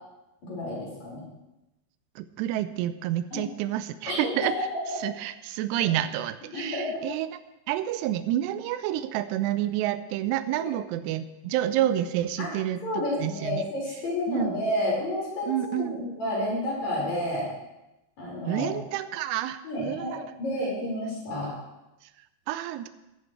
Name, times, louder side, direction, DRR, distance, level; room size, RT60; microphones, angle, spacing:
voice 1, 0.4-1.2 3.3-3.4 4.1-4.3 4.7-4.8 5.8-5.9 6.5-7.0 10.6-10.7 12.4-12.5 12.8-17.5 18.2-18.7 19.6-21.5, left 1 dB, 40° left, -4 dB, 6.2 m, -30 dB
voice 2, 2.2-4.5 5.0-7.3 7.7-13.7 14.3-14.5 15.5-16.0 18.5-20.2 22.5-22.9, right 12 dB, 80° right, 11 dB, 2.7 m, -29 dB
17.0 x 14.0 x 3.3 m, 0.95 s
omnidirectional pair, 5.1 m